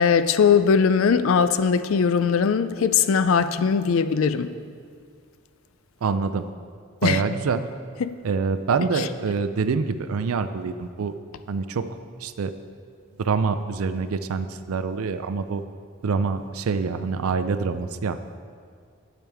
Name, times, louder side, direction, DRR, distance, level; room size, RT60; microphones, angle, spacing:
voice 1, 0.0-4.5 7.0-7.2 8.0-8.2 9.0-9.1, left 6 dB, 70° left, 12 dB, 0.4 m, -20 dB
voice 2, 6.0-6.5 7.0-7.7 8.2-11.1 11.5-11.9 12.2-12.5 13.2-15.6 16.0-18.2, right 5 dB, 85° right, 11 dB, 0.4 m, -25 dB
10.5 x 8.6 x 3.5 m, 2.1 s
head